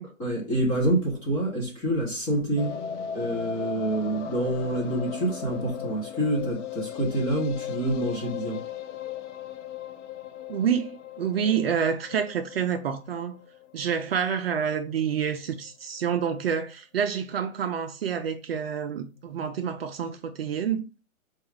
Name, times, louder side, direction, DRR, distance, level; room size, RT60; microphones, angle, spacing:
voice 1, 0.2-2.7 3.1-8.6, right 1 dB, 10° left, 0.6 m, -27 dB
sound 1, 2.6-14.7 15.0-15.1 15.3-15.4 15.7-15.8, left 8 dB, 60° left, 0.5 m, -37 dB
voice 2, 10.5-13.4 13.7-20.8, right 7 dB, 45° right, 0.4 m, -28 dB
4.4 x 2.4 x 3.2 m
hypercardioid pair, 150°, 41 cm